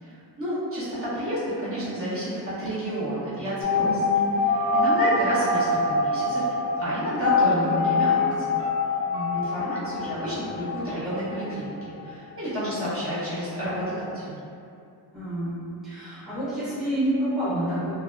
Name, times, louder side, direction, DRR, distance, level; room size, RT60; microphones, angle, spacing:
voice 1, 0.0-4.2 4.4-6.5 6.8-8.6 9.3-11.8 12.0-14.4, equal, 35° right, -12 dB, 0.8 m, -30 dB
sound 1, 3.6-12.1 12.4-12.5 12.7-12.8, left 3 dB, 35° left, 0.5 m, -25 dB
Piano, 7.3-11.0 11.3-11.4, left 1 dB, 65° right, 0.9 m, -40 dB
voice 2, 7.4-7.9 9.1-9.4 15.1-15.5 15.8-17.9, right 1 dB, ahead, -13 dB, 0.7 m, -29 dB
2.6 x 2.2 x 2.4 m, 2.6 s
wide cardioid pair, 150°, 42 cm